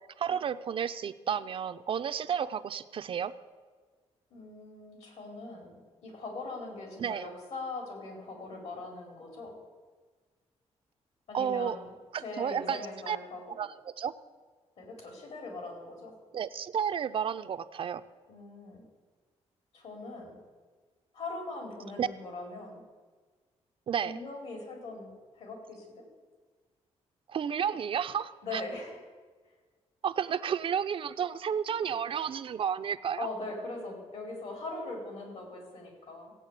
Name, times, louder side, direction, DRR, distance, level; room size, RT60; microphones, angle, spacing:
voice 1, 0.2-3.3 7.0-7.3 11.3-11.8 12.1-13.2 13.6-14.1 16.3-18.0 22.0-22.1 23.9-24.1 27.3-28.6 30.0-33.3, right 8 dB, 50° right, 10 dB, 0.6 m, -32 dB
voice 2, 4.3-9.5 11.3-11.9 12.2-13.6 14.8-16.1 18.3-18.8 19.7-20.4 21.1-22.8 24.0-26.0 28.4-29.0 33.2-36.3, left 3 dB, 70° left, 1 dB, 4.7 m, -41 dB
16.5 x 8.7 x 8.3 m, 1.4 s
wide cardioid pair, 150°, 11 cm